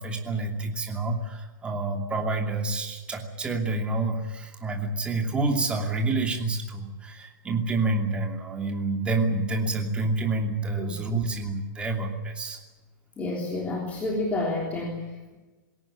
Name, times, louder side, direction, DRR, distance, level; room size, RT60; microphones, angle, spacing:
voice 1, 0.0-12.6, right 2 dB, 10° right, 2 dB, 2.7 m, -28 dB
voice 2, 13.2-15.4, left 2 dB, 15° left, -1 dB, 3.4 m, -30 dB
21.5 x 17.5 x 10.0 m, 1.2 s
supercardioid pair, 165°, 11 cm